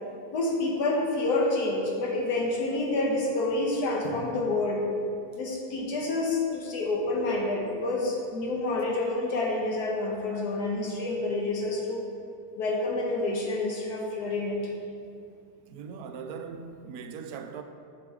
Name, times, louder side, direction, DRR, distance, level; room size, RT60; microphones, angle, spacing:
voice 1, 0.3-4.8 5.4-12.0 12.5-14.6, left 2 dB, 75° left, -2 dB, 1.7 m, -28 dB
voice 2, 15.7-17.6, right 6 dB, 75° right, 7 dB, 1.0 m, -40 dB
7.4 x 6.8 x 3.7 m, 2.5 s
omnidirectional pair, 1.7 m